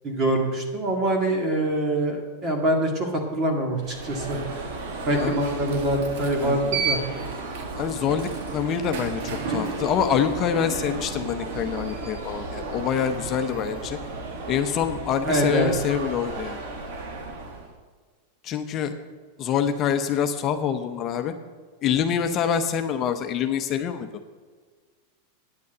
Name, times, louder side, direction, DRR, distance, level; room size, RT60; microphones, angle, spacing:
voice 1, 0.0-4.4 5.0-7.0 15.2-15.7, right 1 dB, 30° right, 1 dB, 1.8 m, -24 dB
Alarm, 3.8-17.7, right 4 dB, 65° right, 1.8 m, -33 dB
voice 2, 7.8-14.0 14.5-16.6 18.4-18.9 19.4-21.3 21.8-24.1, left 8 dB, 35° left, 6 dB, 0.8 m, -26 dB
9.6 x 8.3 x 7.8 m, 1.5 s
supercardioid pair, 145°, 0 cm